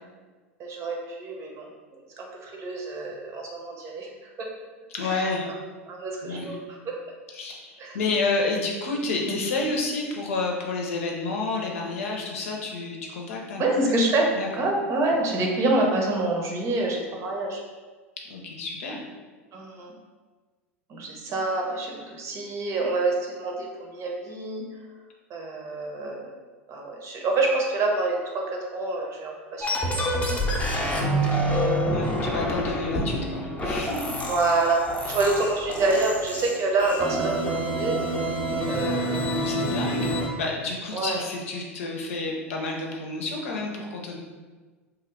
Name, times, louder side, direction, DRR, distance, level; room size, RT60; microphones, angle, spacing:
voice 1, 0.6-1.7 2.2-4.1 4.4-4.5 5.0-5.3 5.9-7.0 7.8-8.0 9.2-9.3 13.6-14.3 14.6-17.6 19.5-19.9 20.9-24.6 25.3-26.4 26.7-31.5 34.3-37.9 38.7-39.5 40.9-41.2, right 2 dB, 40° right, 0 dB, 0.8 m, -27 dB
voice 2, 4.9-5.5 6.2-6.6 7.3-13.6 13.9-14.0 14.4-14.5 18.3-19.0 31.9-34.2 39.4-44.2, left 3 dB, 75° left, 0 dB, 0.7 m, -30 dB
sound 1, 29.6-40.3, equal, 20° left, 0.7 m, -27 dB
3.0 x 2.3 x 3.7 m, 1.4 s
hypercardioid pair, 90°, 7 cm